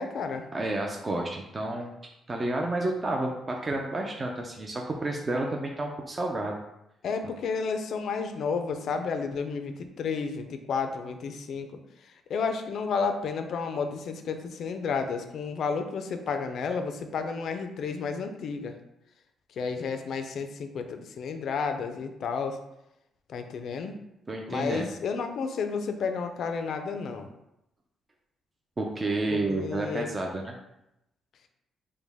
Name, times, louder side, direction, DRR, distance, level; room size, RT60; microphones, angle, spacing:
voice 1, 0.0-0.4 7.0-18.8 19.5-22.6 23.3-24.0 24.5-27.3 29.3-30.1, left 5 dB, 65° left, 7 dB, 0.4 m, -32 dB
voice 2, 0.5-2.0 2.3-6.6 24.3-24.9 28.8-30.6, right 2 dB, 25° right, 1 dB, 0.4 m, -30 dB
5.0 x 2.1 x 3.4 m, 0.86 s
cardioid pair, 125°, 0 cm